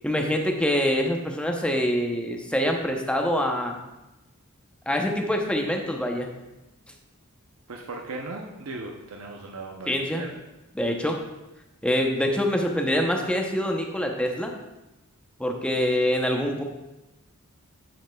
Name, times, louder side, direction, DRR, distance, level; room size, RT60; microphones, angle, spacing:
voice 1, 0.0-3.8 4.9-6.3 9.9-10.2 10.8-11.2 11.8-14.5 15.4-16.6, equal, 5° left, 2 dB, 0.7 m, -25 dB
voice 2, 7.7-10.3, right 2 dB, 75° right, 1 dB, 0.7 m, -37 dB
9.6 x 7.1 x 2.3 m, 1.0 s
head